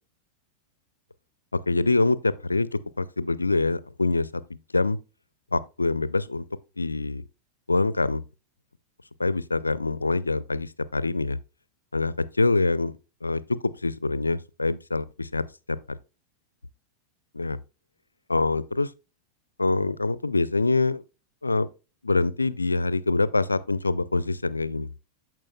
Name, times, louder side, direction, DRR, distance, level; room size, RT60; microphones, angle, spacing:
voice 1, 1.7-2.7 3.0-4.3 4.7-5.0 5.5-6.4 6.8-7.2 7.7-8.2 9.2-11.4 11.9-12.9 13.2-13.4 13.8-15.8 17.3-17.6 18.3-18.9 19.6-21.0 21.4-21.7 22.0-24.9, left 3 dB, 80° left, 0.4 m, -25 dB
13.5 x 4.5 x 2.2 m
figure-of-eight pair, 90°, 0 cm